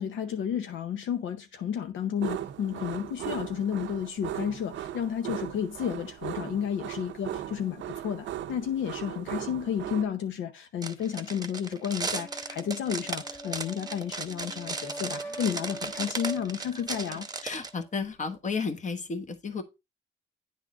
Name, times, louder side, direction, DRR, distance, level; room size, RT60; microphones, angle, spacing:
voice 1, 0.0-17.3, left 8 dB, 75° left, 0.7 m, -32 dB
sound 1, 2.2-10.0, right 11 dB, 70° right, 0.6 m, -37 dB
sound 2, 10.8-17.7, right 4 dB, 20° right, 0.8 m, -36 dB
sound 3, 12.0-17.9, right 1 dB, 10° left, 1.4 m, -44 dB
voice 2, 17.4-19.6, left 4 dB, 40° left, 1.1 m, -32 dB
9.4 x 3.8 x 3.6 m
cardioid pair, 90°, 20 cm